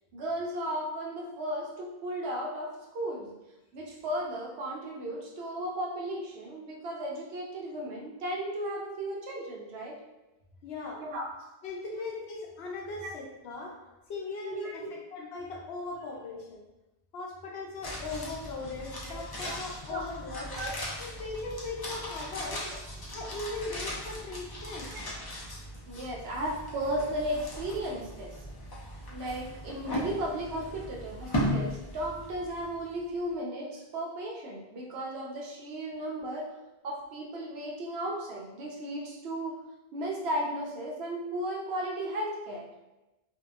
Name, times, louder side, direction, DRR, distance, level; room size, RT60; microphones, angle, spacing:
voice 1, 0.1-3.3 3.7-10.0 11.0-11.3 13.0-13.1 14.5-15.0 19.0-19.6 19.9-20.0 20.4-20.7 22.6-22.8 25.9-28.3 29.1-36.5 36.8-39.6 39.9-42.7, right 1 dB, 80° right, -2 dB, 0.8 m, -35 dB
voice 2, 10.6-11.0 11.6-13.8 14.1-16.6 17.1-20.5 21.0-22.7 23.1-24.9, left 3 dB, 80° left, -2 dB, 0.9 m, -39 dB
sound 1, 17.8-33.0 33.3-33.4, equal, 40° left, 0.3 m, -38 dB
2.7 x 2.1 x 2.3 m, 1.0 s
omnidirectional pair, 1.1 m